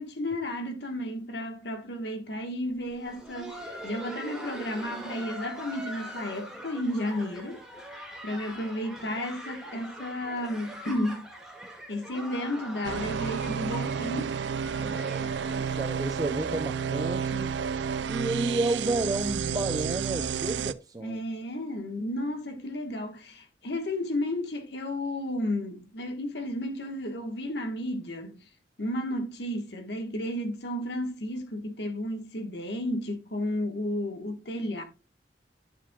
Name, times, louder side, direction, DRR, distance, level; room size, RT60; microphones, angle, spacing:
voice 1, 0.0-7.6 8.2-11.3 11.9-14.4 21.0-28.5 28.8-34.8, left 1 dB, 70° left, 1.4 m, -33 dB
Laughter, 2.8-18.5 18.8-18.9 19.5-19.6 20.1-20.4 21.4-21.5, right 1 dB, 5° right, 2.0 m, -43 dB
sound 1, 12.8-20.7, right 7 dB, 80° right, 0.4 m, -31 dB
voice 2, 14.8-17.5 18.1-21.2, right 2 dB, 20° right, 0.5 m, -31 dB
10.5 x 7.3 x 2.3 m
head